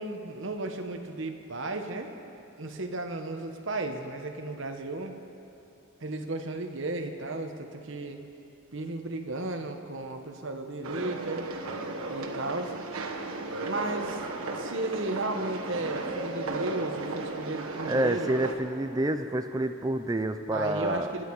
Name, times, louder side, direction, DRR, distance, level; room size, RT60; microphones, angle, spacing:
voice 1, 0.0-2.1 2.6-5.1 6.0-8.2 8.7-11.5 12.1-12.7 13.6-14.2 14.6-18.4 20.5-21.2, right 2 dB, 60° right, 5 dB, 1.2 m, -34 dB
sound 1, 10.8-18.5, right 3 dB, 90° right, 1.4 m, -35 dB
voice 2, 17.8-21.1, right 1 dB, 15° right, 7 dB, 0.4 m, -28 dB
25.5 x 10.5 x 4.8 m, 2.8 s
head